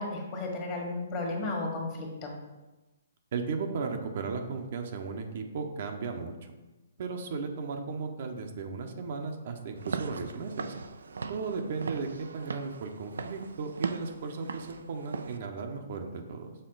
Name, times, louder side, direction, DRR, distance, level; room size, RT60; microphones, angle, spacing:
voice 1, 0.0-2.3, left 2 dB, 30° left, 0 dB, 1.4 m, -34 dB
voice 2, 3.3-6.3 7.0-10.7 11.3-16.5, right 4 dB, 55° right, 4 dB, 0.8 m, -35 dB
Walk footsteps / Siren, 9.8-15.4, right 4 dB, 85° right, 0.4 m, -39 dB
6.6 x 3.7 x 3.9 m, 1.1 s
hypercardioid pair, 145°, 0 cm